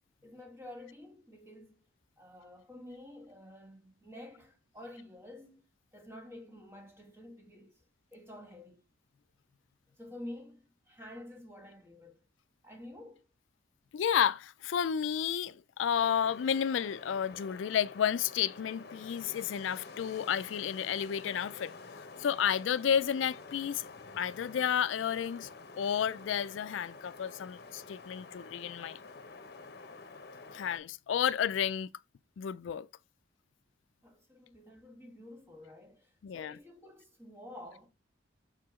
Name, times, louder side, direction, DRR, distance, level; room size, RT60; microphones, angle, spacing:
voice 1, 0.2-1.8 2.2-5.6 5.9-7.7 8.1-8.8 10.0-12.2 12.6-13.2 34.0-37.9, left 1 dB, 15° right, 1.8 m, -49 dB
voice 2, 13.9-23.8 24.2-25.5 25.8-29.0 30.5-31.9 32.4-32.9 36.2-36.6, left 8 dB, 85° left, 0.4 m, -31 dB
Wind, 15.9-30.8, left 3 dB, 55° left, 0.9 m, -49 dB
6.4 x 4.8 x 3.6 m
head